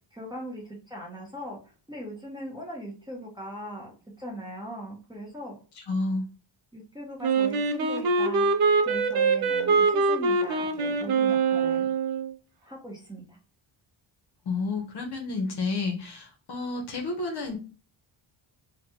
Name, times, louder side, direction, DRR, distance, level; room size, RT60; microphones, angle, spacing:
voice 1, 0.1-1.6 1.9-3.9 4.2-5.5 6.7-11.9 12.6-13.4, equal, 10° right, -4 dB, 0.6 m, -39 dB
voice 2, 5.9-6.3 14.5-17.6, left 3 dB, 55° left, 3 dB, 0.8 m, -30 dB
Wind instrument woodwind instrument, 7.2-12.3, right 4 dB, 50° right, 0.5 m, -24 dB
3.1 x 2.2 x 2.7 m, 0.36 s
wide cardioid pair, 165°, 48 cm